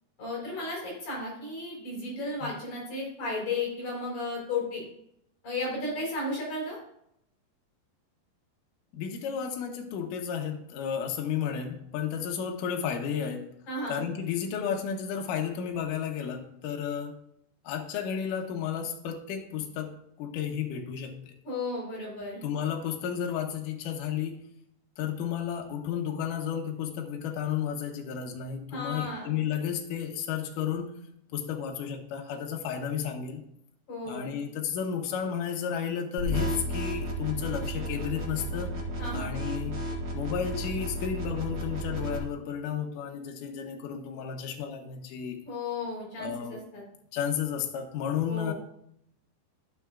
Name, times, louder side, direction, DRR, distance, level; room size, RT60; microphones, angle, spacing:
voice 1, 0.2-4.8 5.4-6.8 13.7-14.0 21.4-22.4 28.7-29.3 33.9-34.3 39.0-39.3 45.5-46.8 48.3-48.5, left 2 dB, 45° left, -4 dB, 5.2 m, -34 dB
voice 2, 8.9-13.5 13.9-17.2 17.6-21.3 22.4-24.4 25.0-30.9 31.3-33.4 34.0-38.7 39.1-39.8 40.1-45.4 46.2-46.6 47.1-48.5, left 8 dB, 75° left, 2 dB, 2.0 m, -32 dB
sound 1, 36.2-42.2, equal, 55° right, 1.6 m, -33 dB
14.0 x 6.9 x 2.5 m, 0.74 s
omnidirectional pair, 5.2 m